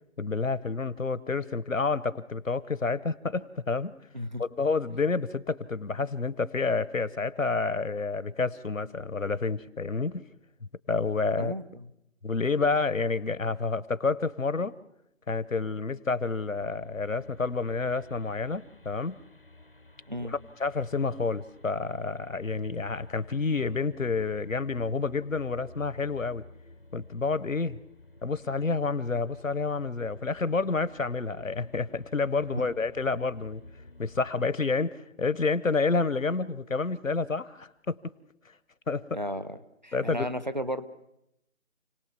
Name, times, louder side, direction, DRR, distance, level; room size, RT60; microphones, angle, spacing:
voice 1, 0.2-3.9 4.4-10.2 10.9-11.5 12.2-14.8 15.3-19.2 20.2-26.4 26.9-27.8 28.2-33.6 34.0-38.0 38.9-39.1 39.9-40.3, left 4 dB, 75° left, 17 dB, 1.1 m, -29 dB
voice 2, 11.4-11.9 20.1-20.3 32.5-32.7 39.1-39.6 39.8-40.9, equal, 35° right, 12 dB, 0.8 m, -34 dB
sound 1, 16.5-34.3, left 2 dB, 45° left, 0.8 m, -53 dB
29.0 x 18.5 x 7.2 m, 0.86 s
figure-of-eight pair, 170°, 40 cm